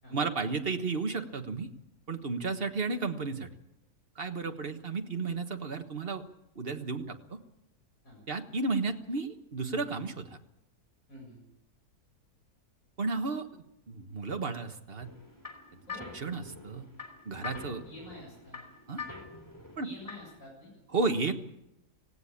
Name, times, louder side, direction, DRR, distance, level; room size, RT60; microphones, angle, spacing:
voice 1, 0.1-1.7 2.1-3.5 4.1-6.2 6.5-7.4 8.3-10.4 13.0-15.1 16.1-16.9 17.2-17.8 18.9-19.0 19.8-19.9 20.9-21.3, right 4 dB, 40° right, 7 dB, 1.5 m, -33 dB
voice 2, 11.1-11.4 15.9-16.2 17.8-18.6 19.8-20.8, left 1 dB, 60° left, -2 dB, 8.1 m, -48 dB
sound 1, 15.0-20.4, left 4 dB, 10° left, 3.1 m, -45 dB
18.5 x 17.0 x 8.6 m, 0.85 s
omnidirectional pair, 1.6 m